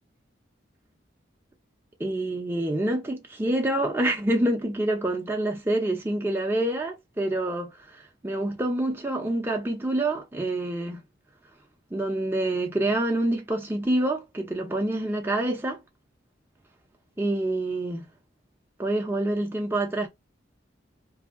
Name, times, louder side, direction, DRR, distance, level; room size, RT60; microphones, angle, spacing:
voice 1, 2.0-11.0 11.9-15.8 17.2-18.1 18.8-20.1, right 1 dB, 10° right, 0.5 m, -27 dB
2.7 x 2.5 x 2.4 m
head